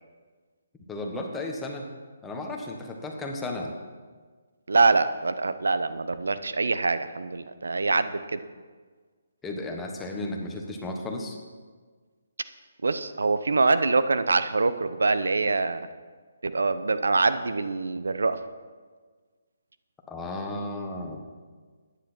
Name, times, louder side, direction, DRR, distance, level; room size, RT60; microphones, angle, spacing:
voice 1, 0.9-1.9 2.2-3.7 9.4-11.4 20.1-21.2, left 2 dB, 10° left, 1 dB, 1.5 m, -34 dB
voice 2, 4.7-8.4 12.8-15.8 16.4-18.4, right 3 dB, 80° right, 12 dB, 0.7 m, -24 dB
14.0 x 10.0 x 4.4 m, 1.5 s
hypercardioid pair, 150°, 0 cm